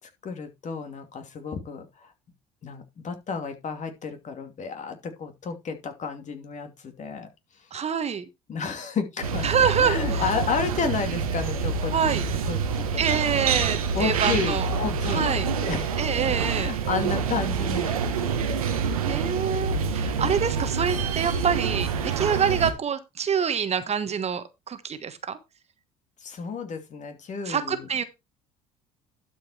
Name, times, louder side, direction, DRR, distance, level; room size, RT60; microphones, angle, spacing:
voice 1, 0.0-2.1 2.6-7.3 8.5-9.4 9.8-12.1 12.5-19.2 26.2-27.9, left 5 dB, 45° left, 2.6 m, -32 dB
voice 2, 7.7-8.2 9.4-10.2 11.9-12.2 13.0-14.7 15.1-15.5 16.0-16.7 19.0-25.4 27.4-28.0, right 7 dB, 40° right, 1.3 m, -26 dB
sound 1, 9.2-22.7, right 5 dB, 85° right, 1.3 m, -27 dB
12.0 x 5.2 x 4.4 m
hypercardioid pair, 65°, 18 cm